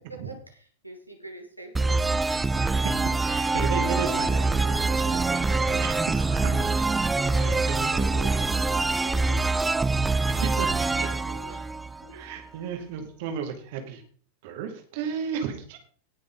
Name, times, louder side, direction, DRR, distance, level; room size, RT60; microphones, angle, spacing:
voice 1, 0.1-2.1 6.5-6.6 7.2-9.7 11.0-11.7 12.0-12.2, right 1 dB, 90° right, 2 dB, 2.1 m, -44 dB
sound 1, 1.8-12.4, right 3 dB, 10° right, 0.4 m, -25 dB
voice 2, 2.6-2.9 3.2-6.9 7.3-8.1 10.3-11.1 11.5-11.6 12.1-14.0 14.4-15.8, right 7 dB, 50° right, 5 dB, 2.2 m, -34 dB
19.0 x 6.5 x 3.8 m, 0.43 s
figure-of-eight pair, 90°, 0 cm